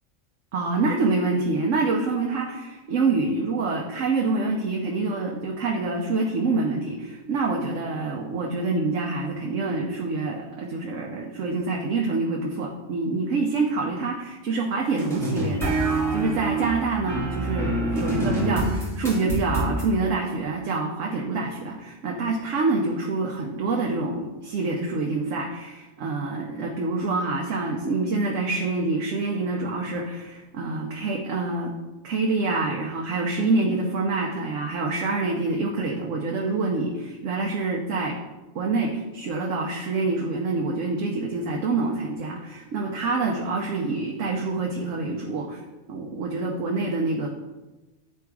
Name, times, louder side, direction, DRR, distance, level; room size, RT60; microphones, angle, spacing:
voice 1, 0.5-31.7 32.0-38.2 38.5-45.6 45.9-47.3, right 3 dB, 85° right, 0 dB, 1.1 m, -26 dB
sound 1, 15.0-19.9, right 2 dB, ahead, 1.8 m, -26 dB
8.9 x 3.5 x 4.7 m, 1.1 s
omnidirectional pair, 1.3 m